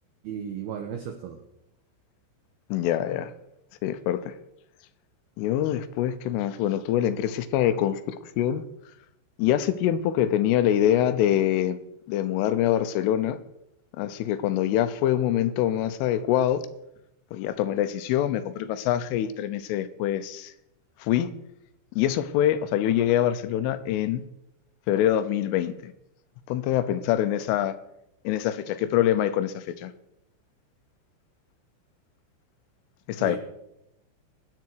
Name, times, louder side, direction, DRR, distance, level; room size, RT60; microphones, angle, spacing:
voice 1, 0.2-1.4 33.2-33.4, right 8 dB, 85° right, 5 dB, 2.2 m, -34 dB
voice 2, 2.7-3.3 3.8-4.3 5.4-8.6 9.4-11.8 12.1-13.4 14.0-16.7 17.3-20.5 21.0-21.3 22.0-24.2 24.9-25.9 26.5-27.7 28.2-29.9 33.1-33.4, left 11 dB, 80° left, 12 dB, 3.2 m, -25 dB
23.0 x 8.7 x 4.6 m, 0.85 s
omnidirectional pair, 5.9 m